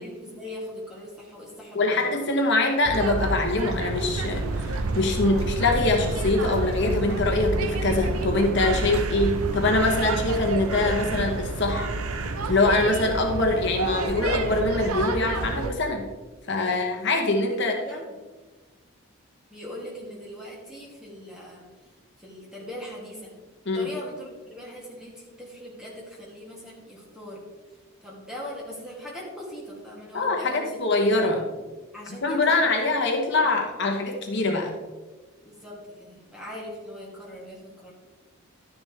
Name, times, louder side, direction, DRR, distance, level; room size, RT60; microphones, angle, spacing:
voice 1, 0.0-2.1 5.2-5.4 17.5-18.2 19.5-21.7 22.2-23.4 23.7-27.5 28.0-30.8 31.6-31.7 31.9-33.0 33.4-33.7 35.4-37.9, equal, 5° right, -5 dB, 2.4 m, -40 dB
voice 2, 1.7-11.9 12.5-16.1 16.5-17.8 23.7-23.9 30.1-31.5 32.2-34.8, left 2 dB, 55° left, 2 dB, 1.0 m, -24 dB
sound 1, 2.8-15.7, right 2 dB, 85° right, 0.7 m, -29 dB
12.0 x 10.0 x 3.3 m, 1.3 s
head